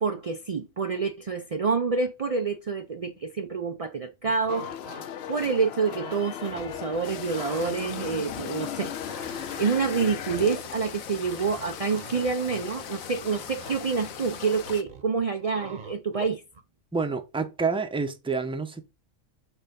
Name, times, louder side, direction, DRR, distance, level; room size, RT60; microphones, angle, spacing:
voice 1, 0.0-4.7 5.3-8.9 9.6-16.4, right 5 dB, 60° right, 0.3 m, -27 dB
sound 1, 4.2-5.0 5.4-7.0 7.3-8.4 8.7-16.6, right 5 dB, 40° right, 0.9 m, -45 dB
sound 2, 4.5-10.6, left 10 dB, 65° left, 0.7 m, -37 dB
sound 3, 7.0-14.8, left 8 dB, 80° left, 1.2 m, -40 dB
voice 2, 16.9-18.8, right 4 dB, 5° right, 0.5 m, -28 dB
7.2 x 3.4 x 5.2 m
omnidirectional pair, 1.4 m